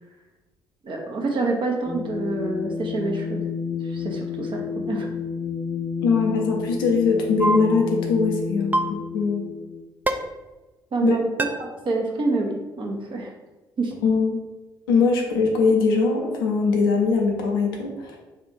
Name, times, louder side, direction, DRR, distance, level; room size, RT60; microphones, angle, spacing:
voice 1, 0.8-3.4 3.8-5.1 10.9-11.3 11.8-13.3 13.8-13.9, right 3 dB, 45° right, 0 dB, 1.0 m, -27 dB
sound 1, 1.8-9.8, left 6 dB, 25° left, 0.8 m, -30 dB
voice 2, 6.0-9.5 11.0-11.2 14.0-14.4 14.9-18.2, left 4 dB, 80° left, 1 dB, 0.6 m, -21 dB
sound 2, 7.4-7.6 8.7-8.9 10.1-10.2 11.4-11.5, right 2 dB, 15° right, 0.5 m, -20 dB
3.4 x 2.5 x 4.5 m, 1.2 s
figure-of-eight pair, 45°, 12 cm